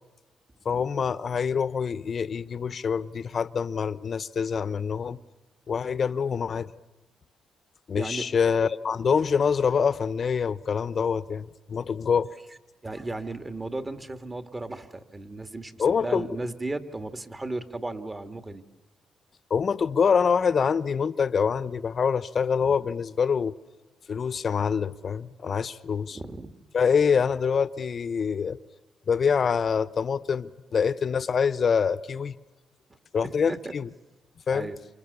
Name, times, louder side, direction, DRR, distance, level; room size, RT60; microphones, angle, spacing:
voice 1, 0.6-5.2 5.7-6.7 7.9-12.3 15.8-16.3 19.5-23.5 24.1-26.2 26.7-28.6 29.1-32.4 33.1-33.9 34.5-34.7, left 6 dB, 50° left, 1.0 m, -25 dB
voice 2, 7.9-8.3 12.8-18.6 22.6-22.7 26.1-26.5 33.5-33.7 34.5-34.8, right 2 dB, 25° right, 2.3 m, -35 dB
28.0 x 28.0 x 7.0 m
cardioid pair, 70°, 0 cm